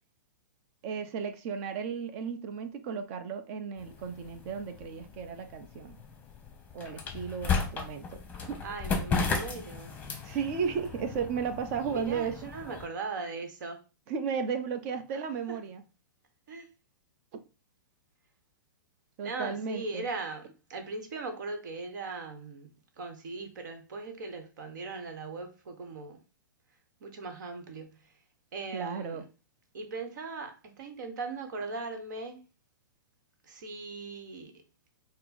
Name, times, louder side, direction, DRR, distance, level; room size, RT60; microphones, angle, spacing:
voice 1, 0.8-6.0 6.7-8.6 10.2-12.4 14.1-15.8 19.2-20.0 28.7-29.3, right 6 dB, 45° right, 0.7 m, -34 dB
sound 1, 3.8-12.9, left 5 dB, 15° left, 0.8 m, -35 dB
voice 2, 8.6-9.9 11.8-13.8 15.1-15.2 15.5-15.6 16.5-16.7 19.2-22.7 23.0-26.2 27.0-28.1 28.5-29.2 29.7-32.4 33.4-34.6, right 3 dB, 65° right, 1.1 m, -39 dB
4.3 x 2.0 x 4.1 m
hypercardioid pair, 125°, 11 cm